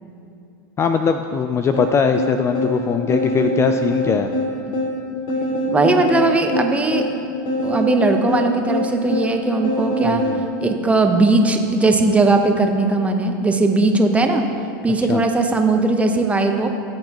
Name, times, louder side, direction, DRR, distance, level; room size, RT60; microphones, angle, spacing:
voice 1, 0.8-4.3 10.0-10.4 15.1-15.3, left 6 dB, 25° left, 8 dB, 0.4 m, -20 dB
sound 1, 1.7-10.4, left 1 dB, 55° left, 2.6 m, -24 dB
voice 2, 5.7-7.0 7.6-10.2 10.6-14.4 14.8-16.7, right 3 dB, 10° right, 4 dB, 0.9 m, -18 dB
17.0 x 7.8 x 3.0 m, 2.7 s
supercardioid pair, 120°, 11 cm